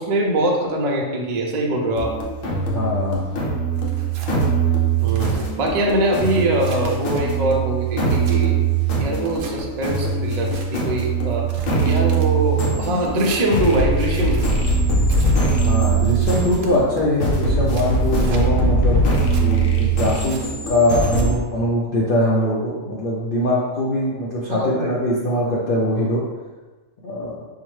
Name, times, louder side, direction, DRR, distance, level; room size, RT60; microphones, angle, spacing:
voice 1, 0.0-2.2 5.0-8.6 9.0-11.5 11.8-14.5 24.5-24.9, right 1 dB, 50° right, -1 dB, 0.5 m, -22 dB
sound 1, 1.9-21.3, right 3 dB, 75° left, 1.1 m, -21 dB
voice 2, 2.6-3.3 15.5-19.0 19.4-26.2 27.0-27.4, left 1 dB, 55° left, -6 dB, 0.7 m, -22 dB
Tearing, 3.7-4.3 4.9-5.5 6.0-7.2 7.7-8.4 9.2-9.5 10.2-10.7 11.3-12.3 13.1-13.5 14.0-14.5 15.1-15.4 16.0-16.7 17.4-18.4 19.0-19.5 20.0-20.4 21.0-21.3, right 3 dB, 75° right, 1.0 m, -40 dB
5.6 x 2.1 x 3.1 m, 1.2 s
omnidirectional pair, 1.4 m